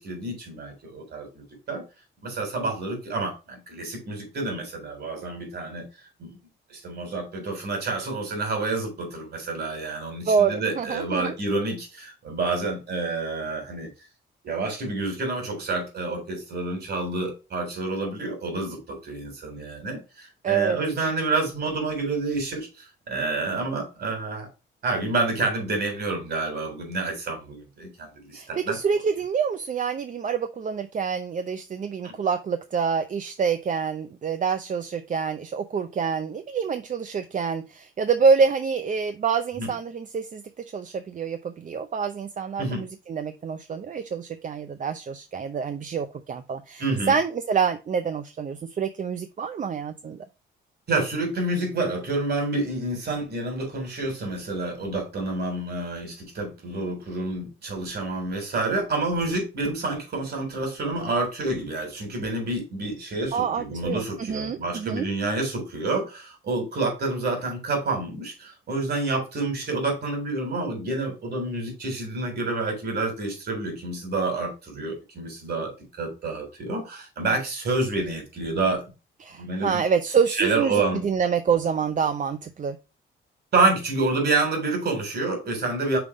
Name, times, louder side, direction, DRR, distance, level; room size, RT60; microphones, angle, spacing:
voice 1, 0.0-1.8 2.2-5.8 6.2-6.4 6.7-13.9 14.4-24.5 24.8-28.8 32.0-32.1 39.6-39.7 42.6-42.8 46.8-47.1 50.9-78.8 79.4-79.8 80.3-81.0 83.5-86.0, right 3 dB, 55° right, 3.5 m, -28 dB
voice 2, 10.3-11.3 20.4-20.8 28.3-40.4 40.7-50.2 63.3-65.1 79.2-82.8, right 6 dB, 40° right, 0.6 m, -26 dB
5.7 x 3.8 x 4.7 m
cardioid pair, 90°, 20 cm